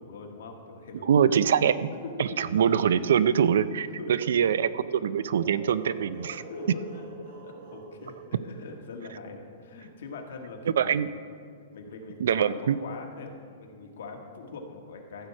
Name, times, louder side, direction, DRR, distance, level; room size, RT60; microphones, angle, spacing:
voice 1, 0.0-1.1 2.0-2.3 4.0-4.5 6.4-7.0 7.4-8.2 8.4-11.0 11.7-12.5 12.8-15.3, left 3 dB, 70° left, 2 dB, 1.6 m, -42 dB
voice 2, 1.1-1.9 2.2-6.4 10.8-11.1 12.2-12.8, right 8 dB, 75° right, 16 dB, 0.4 m, -24 dB
sound 1, 5.4-9.1, right 2 dB, 55° right, 2.8 m, -46 dB
13.5 x 4.8 x 7.6 m, 2.1 s
hypercardioid pair, 165°, 0 cm